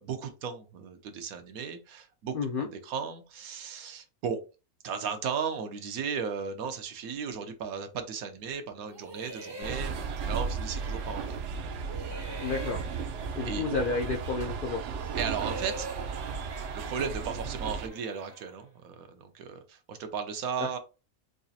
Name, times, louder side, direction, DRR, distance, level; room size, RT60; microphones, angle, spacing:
voice 1, 0.0-4.4 4.8-11.4 13.4-13.7 15.2-15.9 16.7-20.8, right 6 dB, 85° right, 7 dB, 1.2 m, -35 dB
voice 2, 2.3-2.7 12.4-12.8 13.4-14.8 20.6-20.7, left 4 dB, 70° left, 2 dB, 0.5 m, -31 dB
sound 1, 8.9-11.5 11.8-14.4 14.8-18.6, right 2 dB, 40° right, 0.3 m, -45 dB
sound 2, 9.6-17.9, right 5 dB, 65° right, 0.8 m, -35 dB
5.0 x 2.4 x 2.7 m, 0.31 s
omnidirectional pair, 1.5 m